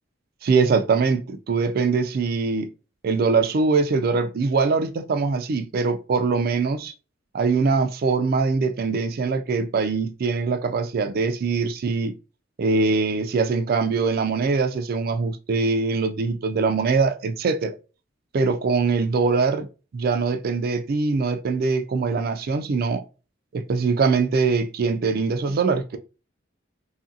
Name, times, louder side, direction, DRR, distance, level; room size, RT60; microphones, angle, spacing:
voice 1, 0.4-2.7 3.0-6.9 7.3-12.1 12.6-17.7 18.3-19.7 19.9-23.0 23.5-26.0, right 4 dB, 50° right, 0.4 m, -22 dB
2.7 x 2.5 x 2.7 m
head